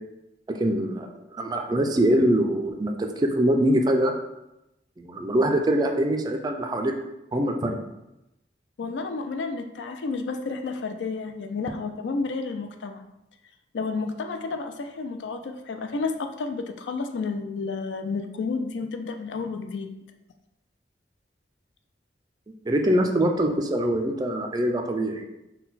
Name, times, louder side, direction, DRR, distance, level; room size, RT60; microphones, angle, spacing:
voice 1, 0.5-4.1 5.0-6.9 7.3-7.8 22.6-25.2, right 1 dB, 20° right, 4 dB, 0.3 m, -23 dB
voice 2, 8.8-13.1 13.7-19.9, left 4 dB, 90° left, 7 dB, 0.4 m, -31 dB
3.9 x 2.2 x 4.0 m, 0.91 s
head